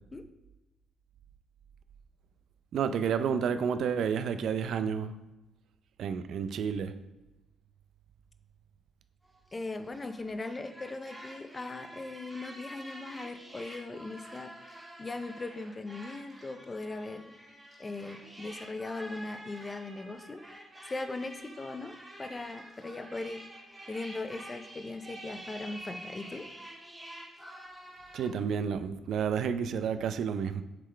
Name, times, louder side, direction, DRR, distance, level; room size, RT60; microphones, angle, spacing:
voice 1, 2.7-5.1 6.0-6.9 28.1-30.6, right 7 dB, 70° right, 10 dB, 0.4 m, -30 dB
sound 1, 9.2-28.3, right 1 dB, 5° right, 1.8 m, -48 dB
voice 2, 9.5-20.4 20.8-23.5 23.9-26.5, left 2 dB, 25° left, 9 dB, 0.5 m, -39 dB
7.5 x 3.8 x 3.3 m, 1.0 s
cardioid pair, 90°, 0 cm